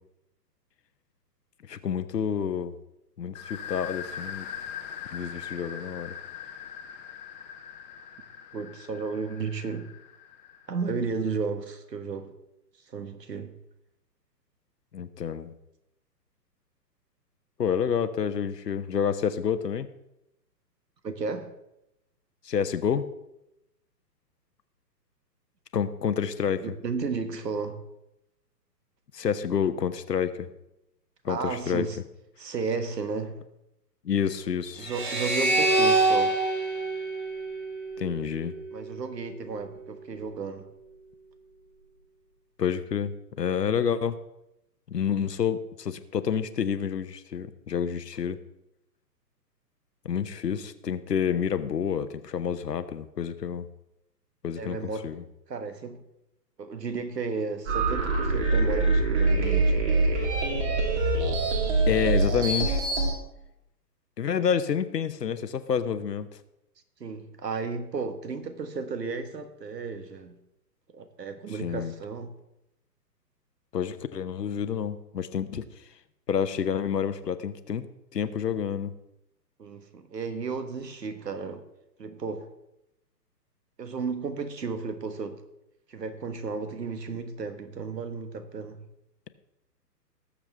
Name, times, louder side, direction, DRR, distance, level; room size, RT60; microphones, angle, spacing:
voice 1, 1.7-2.7 3.2-4.4 5.1-6.1 14.9-15.5 17.6-19.9 22.4-23.1 25.7-26.7 29.1-30.5 31.2-31.9 34.0-34.9 38.0-38.5 42.6-44.2 44.9-48.4 50.0-53.7 54.4-54.8 55.0-55.2 61.9-62.9 64.2-66.3 71.5-71.9 73.7-75.7 76.3-78.9, left 7 dB, 75° left, 1.0 m, -28 dB
sound 1, 3.3-10.8, left 8 dB, 25° left, 0.8 m, -41 dB
voice 2, 8.5-9.9 10.7-12.3 12.9-13.5 21.0-21.5 26.6-27.8 31.3-32.0 32.4-33.4 34.8-36.3 38.7-40.7 54.6-55.1 55.5-56.0 56.6-59.9 67.0-70.4 70.9-72.3 79.6-81.6 82.0-82.5 83.8-85.4 85.9-88.8, right 4 dB, 75° right, 1.5 m, -33 dB
sound 2, 34.8-38.1, right 2 dB, 20° right, 3.6 m, -25 dB
sound 3, 57.7-63.1, right 3 dB, 45° right, 2.7 m, -24 dB
19.0 x 7.3 x 3.4 m
figure-of-eight pair, 125°, 50 cm